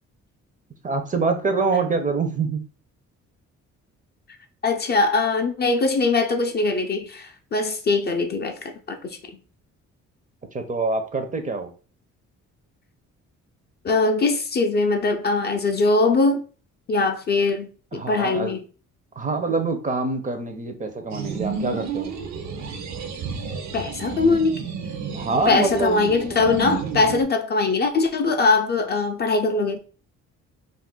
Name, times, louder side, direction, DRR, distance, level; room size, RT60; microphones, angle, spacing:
voice 1, 0.8-2.7 10.5-11.7 17.9-18.5 19.2-22.1 25.1-26.1, right 3 dB, 25° right, 0.5 m, -25 dB
voice 2, 4.6-9.4 13.8-16.4 16.9-18.6 23.7-24.6 25.5-29.8, left 3 dB, 35° left, 0.4 m, -22 dB
sound 1, 21.1-27.2, right 6 dB, 65° right, 0.6 m, -31 dB
2.4 x 2.1 x 3.6 m
cardioid pair, 90°, 30 cm